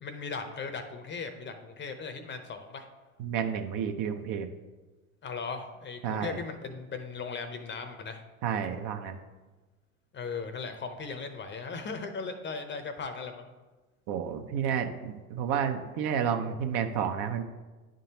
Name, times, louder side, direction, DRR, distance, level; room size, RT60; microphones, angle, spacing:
voice 1, 0.0-2.9 5.2-8.2 10.1-13.5, left 5 dB, 25° left, 7 dB, 0.7 m, -38 dB
voice 2, 3.2-4.5 6.0-6.4 8.4-9.2 14.1-17.4, right 8 dB, 50° right, 6 dB, 0.7 m, -30 dB
10.5 x 3.8 x 2.8 m, 1.2 s
hypercardioid pair, 75°, 44 cm